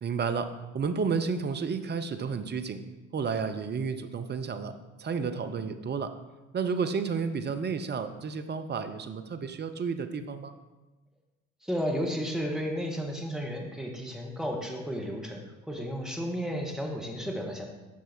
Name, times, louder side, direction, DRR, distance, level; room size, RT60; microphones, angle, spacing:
voice 1, 0.0-2.8 3.1-4.7 5.0-6.1 6.5-10.5, right 5 dB, 25° right, 9 dB, 0.7 m, -31 dB
voice 2, 11.6-15.4 15.7-17.6, equal, ahead, 0 dB, 1.6 m, -33 dB
8.2 x 6.0 x 4.4 m, 1.1 s
hypercardioid pair, 60°, 40 cm